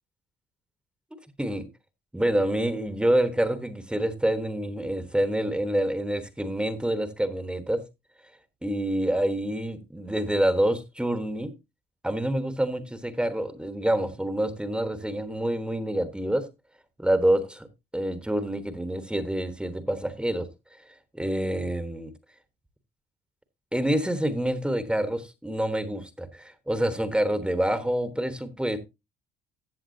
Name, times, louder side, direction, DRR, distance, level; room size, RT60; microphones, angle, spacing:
voice 1, 2.1-7.8 8.6-11.5 12.0-16.5 17.0-17.7 17.9-20.5 21.1-22.1 23.7-28.8, right 1 dB, 5° right, 1.2 m, -27 dB
14.0 x 7.7 x 2.7 m
cardioid pair, 110°, 17 cm